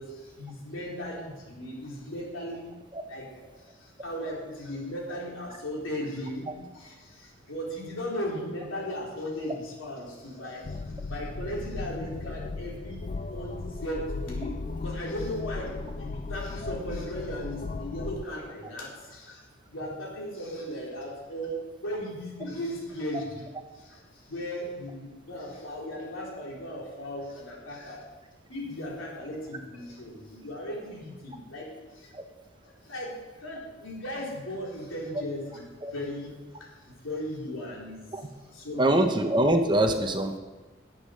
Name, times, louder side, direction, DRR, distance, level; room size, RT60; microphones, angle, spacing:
voice 1, 0.0-2.7 3.1-3.3 3.8-13.0 13.3-19.4 19.7-23.4 23.7-24.0 24.3-28.1 28.5-31.7 31.9-32.1 32.8-35.6 35.9-36.7 37.0-38.0 38.5-39.0, equal, 90° left, -3 dB, 3.7 m, -37 dB
sound 1, 10.6-18.2, left 3 dB, 40° left, 0.4 m, -36 dB
voice 2, 38.8-40.4, right 1 dB, 25° right, 6 dB, 0.8 m, -24 dB
11.5 x 8.4 x 6.4 m, 1.2 s
head